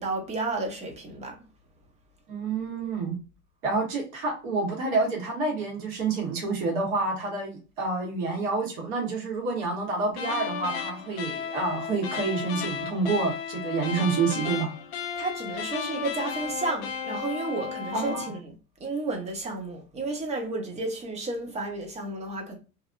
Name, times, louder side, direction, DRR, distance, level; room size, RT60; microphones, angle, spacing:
voice 1, 0.0-1.4 15.2-18.5 18.8-22.6, right 2 dB, 15° right, 0.6 m, -32 dB
voice 2, 2.3-3.2 3.6-14.8 17.9-18.3, right 3 dB, 55° right, 1.4 m, -28 dB
sound 1, 10.1-18.4, left 7 dB, 45° left, 0.5 m, -34 dB
2.7 x 2.6 x 2.4 m
hypercardioid pair, 100°, 46 cm